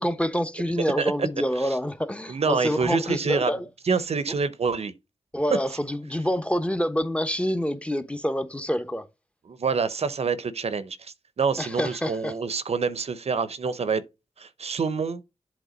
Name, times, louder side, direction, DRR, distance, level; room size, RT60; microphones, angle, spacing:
voice 1, 0.0-3.7 5.3-9.1 11.6-12.3, equal, 10° left, 0.9 m, -27 dB
voice 2, 1.0-1.3 1.6-1.7 2.3-3.5 3.9-4.9 9.5-14.0 14.4-15.2, right 5 dB, 65° right, 0.7 m, -27 dB
8.1 x 3.5 x 5.1 m
cardioid pair, 55°, 11 cm